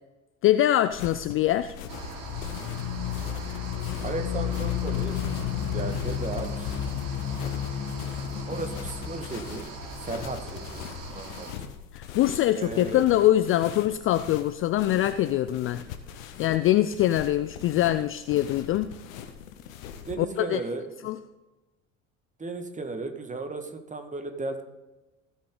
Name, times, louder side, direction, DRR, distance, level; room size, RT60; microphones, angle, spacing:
voice 1, 0.4-1.7 11.9-15.8 16.4-18.9 20.2-20.6 21.0-21.2, left 13 dB, 35° left, 13 dB, 0.4 m, -23 dB
sound 1, 0.9-20.1, left 9 dB, 70° left, 1.0 m, -42 dB
sound 2, 1.9-11.5, right 3 dB, 50° right, 2.7 m, -41 dB
sound 3, 2.2-10.8, left 10 dB, 50° left, 1.4 m, -32 dB
voice 2, 4.0-5.2 5.7-6.7 8.5-9.7 10.0-10.9 11.1-11.5 12.5-13.0 20.1-20.8 22.4-24.6, right 3 dB, 20° right, 6 dB, 1.5 m, -35 dB
16.0 x 6.2 x 3.8 m, 1.1 s
figure-of-eight pair, 60°, 42 cm